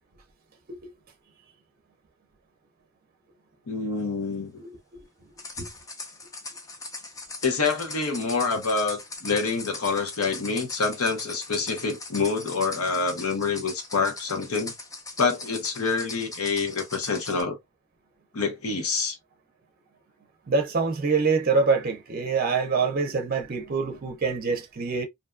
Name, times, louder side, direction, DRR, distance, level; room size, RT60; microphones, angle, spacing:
voice 1, 3.7-4.6 7.4-14.7 15.2-17.6 18.3-19.2, left 4 dB, 80° left, 0.9 m, -27 dB
sound 1, 5.4-17.4, left 3 dB, 15° left, 0.4 m, -40 dB
voice 2, 20.5-25.1, right 4 dB, 40° right, 0.6 m, -25 dB
2.6 x 2.3 x 2.4 m
head